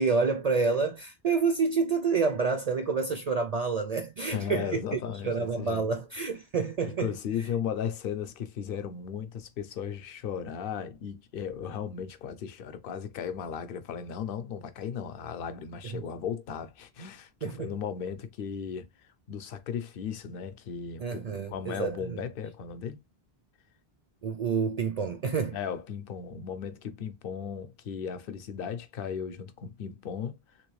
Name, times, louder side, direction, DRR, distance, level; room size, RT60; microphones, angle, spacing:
voice 1, 0.0-7.1 15.9-16.0 17.4-17.7 21.0-22.2 24.2-25.6, right 4 dB, 55° right, 0.5 m, -28 dB
voice 2, 4.3-5.9 6.8-18.9 19.3-23.0 25.5-30.4, left 7 dB, 65° left, 0.8 m, -36 dB
3.4 x 2.9 x 3.1 m
omnidirectional pair, 1.0 m